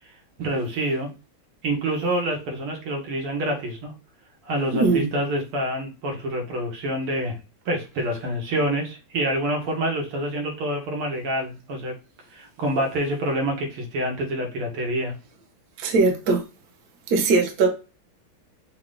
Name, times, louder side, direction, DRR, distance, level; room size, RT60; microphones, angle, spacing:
voice 1, 0.4-1.1 1.6-3.9 4.4-7.4 7.7-12.0 12.3-15.2, right 1 dB, 85° right, 1 dB, 2.2 m, -27 dB
voice 2, 4.7-5.1 15.8-16.4 17.1-17.7, right 3 dB, 55° right, 4 dB, 1.2 m, -20 dB
5.8 x 2.2 x 3.7 m, 0.31 s
omnidirectional pair, 2.4 m